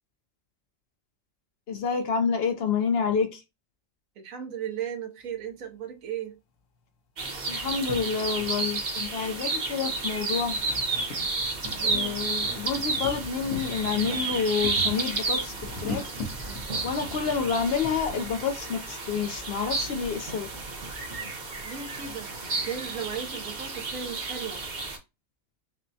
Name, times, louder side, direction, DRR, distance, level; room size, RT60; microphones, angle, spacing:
voice 1, 1.7-3.4 7.5-10.6 11.8-16.1 16.8-20.5, left 6 dB, 60° left, 0.7 m, -28 dB
voice 2, 4.2-6.3 11.7-12.2 21.6-22.3 22.6-24.6, right 8 dB, 90° right, 1.2 m, -36 dB
sound 1, 7.2-25.0, right 3 dB, 40° right, 0.8 m, -32 dB
sound 2, 7.6-23.9, right 2 dB, 70° right, 1.5 m, -46 dB
sound 3, 8.4-8.5 9.5-9.6 10.0-10.1 10.4-18.0 18.9-19.0 19.2-19.3, left 2 dB, 85° left, 1.1 m, -40 dB
5.9 x 2.1 x 2.7 m
omnidirectional pair, 1.3 m